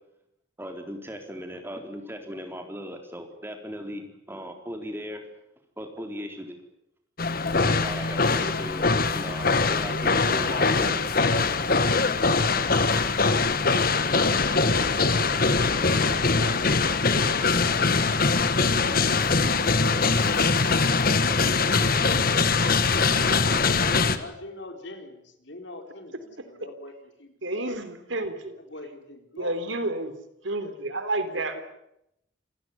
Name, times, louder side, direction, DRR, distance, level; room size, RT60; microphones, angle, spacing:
voice 1, 0.6-5.2 5.8-6.6 7.5-8.9 9.1-11.0, equal, 10° right, 4 dB, 4.1 m, -38 dB
sound 1, 7.2-24.2, left 4 dB, 50° left, 1.6 m, -22 dB
voice 2, 16.8-18.9 23.2-27.8 28.5-29.8 30.4-30.7 31.3-31.4, left 2 dB, 70° left, 5 dB, 4.4 m, -44 dB
voice 3, 27.4-28.6 29.4-30.1 30.4-31.6, right 2 dB, 90° right, 10 dB, 3.4 m, -30 dB
27.5 x 16.5 x 9.7 m, 0.80 s
head